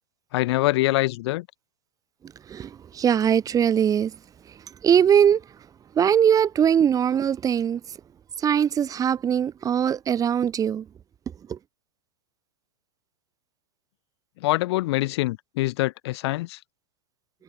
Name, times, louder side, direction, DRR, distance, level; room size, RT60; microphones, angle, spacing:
voice 1, 0.3-1.5 14.4-16.6, left 18 dB, 55° left, 0.5 m, -24 dB
voice 2, 2.5-4.1 4.8-5.4 5.9-7.8 8.4-10.9 11.5-11.6, right 8 dB, 20° right, 1.1 m, -21 dB
hypercardioid pair, 110°, 16 cm